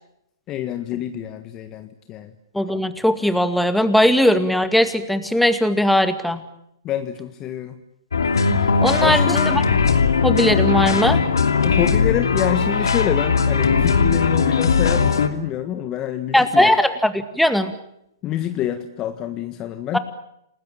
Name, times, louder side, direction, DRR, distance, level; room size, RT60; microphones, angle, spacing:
voice 1, 0.5-2.3 6.8-7.8 9.0-9.4 11.6-16.7 18.2-20.0, left 11 dB, 25° left, 9 dB, 1.6 m, -26 dB
voice 2, 2.5-6.4 8.8-9.6 10.2-11.2 16.3-17.7 19.9-20.0, left 1 dB, ahead, 10 dB, 2.1 m, -19 dB
sound 1, 8.1-15.3, left 5 dB, 85° left, 2.7 m, -19 dB
28.5 x 20.0 x 8.7 m, 0.77 s
hypercardioid pair, 135°, 2 cm